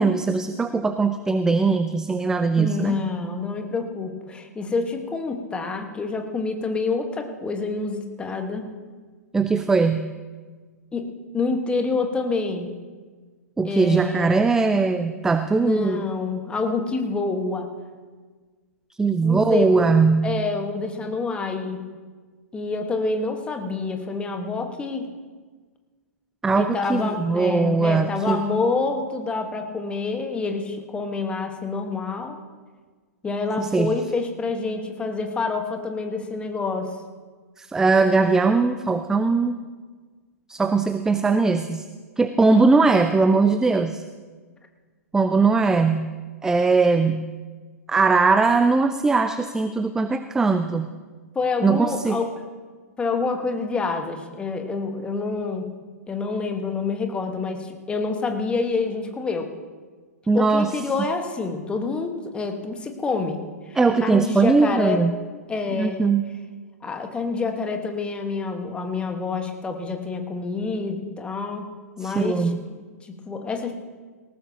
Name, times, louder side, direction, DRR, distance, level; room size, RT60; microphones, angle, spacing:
voice 1, 0.0-3.0 9.3-10.1 13.6-16.0 19.0-20.4 26.4-28.4 33.6-34.0 37.6-39.6 40.5-41.8 42.2-44.0 45.1-46.1 46.4-47.3 47.9-50.9 51.6-52.2 60.3-60.7 63.8-65.1 65.7-66.3 72.0-72.6, right 4 dB, 5° right, 10 dB, 0.4 m, -20 dB
voice 2, 2.6-8.7 10.9-12.7 13.6-14.5 15.5-17.7 19.2-19.9 20.2-21.8 22.5-25.1 26.5-32.4 33.2-36.9 51.3-52.3 53.0-55.7 56.1-59.5 60.3-63.4 63.7-65.0 65.5-66.1 66.8-73.7, left 4 dB, 10° left, 5 dB, 1.4 m, -27 dB
18.5 x 18.5 x 2.9 m, 1.4 s
figure-of-eight pair, 110°, 8 cm